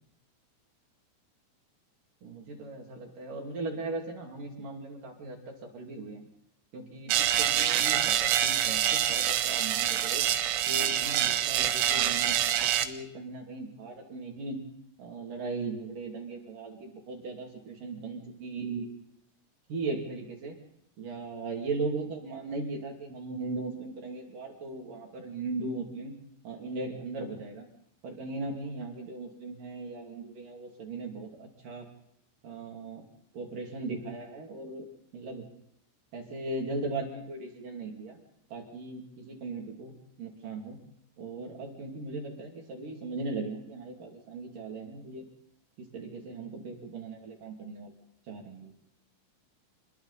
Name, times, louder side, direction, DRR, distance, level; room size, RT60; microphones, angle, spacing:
voice 1, 2.2-6.3 6.7-10.2 10.7-14.6 15.0-18.9 19.7-20.6 21.0-26.1 26.4-27.6 28.0-31.9 32.4-33.0 33.3-34.8 35.1-35.4 36.1-38.2 38.5-39.9 40.2-40.8 41.2-45.2 45.9-47.9 48.3-48.7, right 3 dB, 45° right, 1 dB, 3.8 m, -38 dB
sound 1, 7.1-12.9, right 11 dB, 90° right, 3.9 m, -26 dB
29.0 x 21.0 x 4.2 m, 0.75 s
omnidirectional pair, 5.8 m